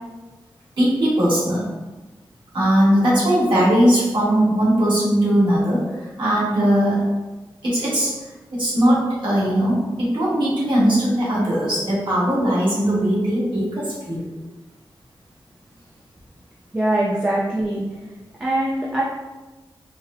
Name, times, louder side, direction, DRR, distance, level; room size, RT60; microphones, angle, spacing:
voice 1, 0.8-1.7 2.5-7.1 7.6-8.1 8.5-14.2, equal, 70° right, -8 dB, 1.3 m, -19 dB
voice 2, 16.7-17.8 18.4-19.0, right 1 dB, 15° right, -6 dB, 0.4 m, -22 dB
4.0 x 2.1 x 2.5 m, 1.2 s
wide cardioid pair, 130°, 9 cm